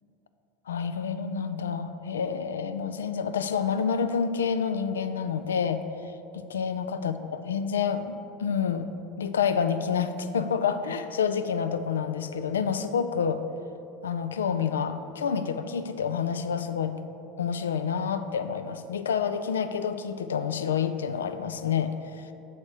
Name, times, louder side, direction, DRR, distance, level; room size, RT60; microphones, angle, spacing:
voice 1, 0.7-5.8 6.3-8.9 9.2-13.4 14.0-17.0 17.4-22.3, left 7 dB, 90° left, 10 dB, 0.3 m, -28 dB
6.8 x 4.2 x 6.3 m, 2.9 s
hypercardioid pair, 85°, 0 cm